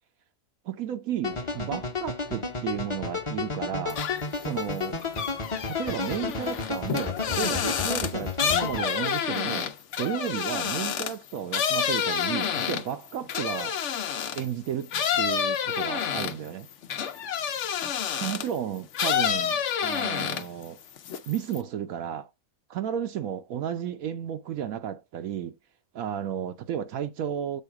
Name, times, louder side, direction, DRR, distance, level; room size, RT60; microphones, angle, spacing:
voice 1, 0.6-4.0 4.4-5.0 5.7-9.7 10.0-13.8 14.3-14.9 15.2-16.7 18.2-20.8 21.3-22.3 22.7-25.6 25.9-27.6, right 9 dB, 80° right, 1.1 m, -33 dB
sound 1, 1.2-8.9, left 4 dB, 25° left, 0.9 m, -32 dB
sound 2, 3.9-4.4 4.8-14.5 14.9-18.6 18.9-20.6 21.0-21.6, left 8 dB, 60° left, 1.0 m, -29 dB
8.0 x 3.7 x 4.7 m
omnidirectional pair, 1.5 m